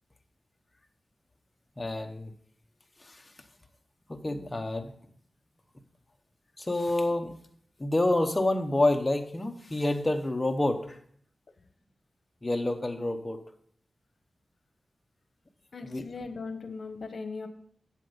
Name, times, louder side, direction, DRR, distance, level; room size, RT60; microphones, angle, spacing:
voice 1, 1.8-2.3 3.0-3.2 4.1-4.9 6.6-7.3 7.8-11.0 12.4-13.4 15.8-16.0, left 2 dB, 20° left, 5 dB, 0.9 m, -28 dB
voice 2, 15.7-17.5, left 4 dB, 65° left, 8 dB, 1.1 m, -38 dB
7.7 x 7.5 x 5.2 m, 0.62 s
wide cardioid pair, 115°, 0 cm